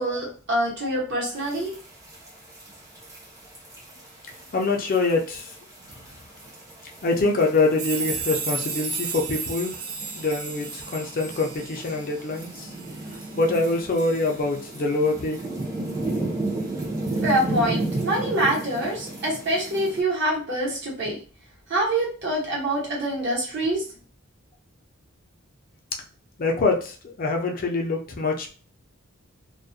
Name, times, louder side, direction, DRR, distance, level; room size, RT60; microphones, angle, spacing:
voice 1, 0.0-1.7 17.2-21.2 21.7-23.8, right 1 dB, 55° right, -4 dB, 1.0 m, -25 dB
sound 1, 1.3-20.0, right 2 dB, 15° right, 0.6 m, -34 dB
voice 2, 4.5-5.5 7.0-9.7 10.2-12.7 13.4-15.4 26.4-28.5, left 3 dB, 40° left, 2 dB, 0.4 m, -24 dB
sound 2, 7.8-14.7 15.0-15.2 16.5-16.6, right 5 dB, 75° right, 0.5 m, -34 dB
2.3 x 2.1 x 2.6 m, 0.39 s
head